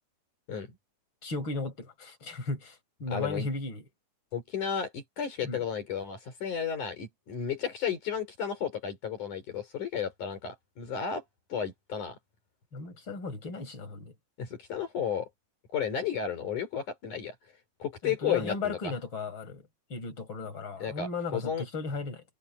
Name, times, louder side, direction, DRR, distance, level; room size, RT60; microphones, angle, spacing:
voice 1, 1.2-3.8 5.4-5.6 12.7-14.1 18.0-22.2, left 3 dB, 35° left, 6.2 m, -36 dB
voice 2, 3.1-3.5 4.3-11.2 11.5-12.2 14.4-15.3 15.7-17.4 17.8-18.9 20.8-21.6, left 7 dB, 65° left, 5.3 m, -33 dB
omnidirectional pair, 3.8 m